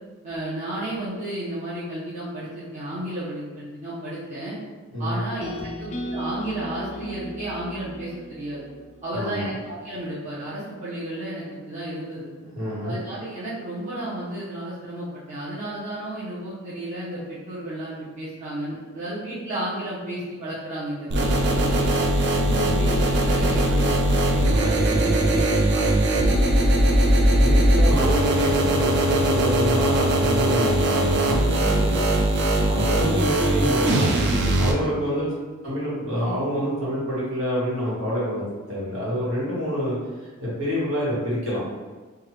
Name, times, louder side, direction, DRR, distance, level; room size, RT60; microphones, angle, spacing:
voice 1, 0.2-4.5 5.0-8.7 9.0-12.3 12.8-22.0 22.8-26.1, right 1 dB, 30° right, -11 dB, 0.8 m, -33 dB
sound 1, 5.4-9.5, equal, 30° left, 0.4 m, -36 dB
voice 2, 9.1-9.5 12.4-13.0 22.4-22.7 27.3-32.0 32.6-34.1 34.5-35.3 35.6-40.0 40.2-41.6, equal, 65° right, -8 dB, 1.3 m, -27 dB
sound 2, 21.1-34.7, right 1 dB, 50° right, 0.4 m, -20 dB
3.3 x 2.3 x 3.1 m, 1.3 s
head